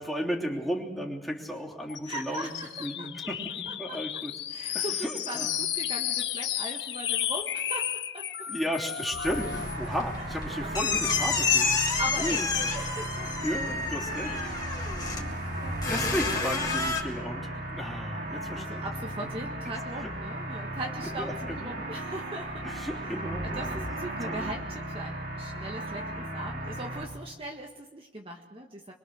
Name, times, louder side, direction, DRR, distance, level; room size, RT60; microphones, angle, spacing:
voice 1, 0.0-2.5 2.8-4.3 4.7-5.6 8.5-11.8 12.2-12.5 13.4-14.4 14.7-14.9 15.9-18.8 19.4-19.5 21.0-21.8 22.6-23.9 24.2-24.7, equal, ahead, -2 dB, 3.2 m, -34 dB
sound 1, 1.9-9.9, left 11 dB, 85° left, 1.3 m, -33 dB
voice 2, 2.0-3.1 3.7-4.0 4.5-8.3 11.8-13.3 14.2-15.8 18.5-22.8 23.4-28.9, right 1 dB, 30° right, 1 dB, 1.7 m, -40 dB
sound 2, 9.1-17.0, left 5 dB, 25° left, 2.6 m, -30 dB
sound 3, 9.3-27.0, right 1 dB, 60° right, 3.5 m, -36 dB
25.5 x 22.5 x 6.5 m, 1.1 s
head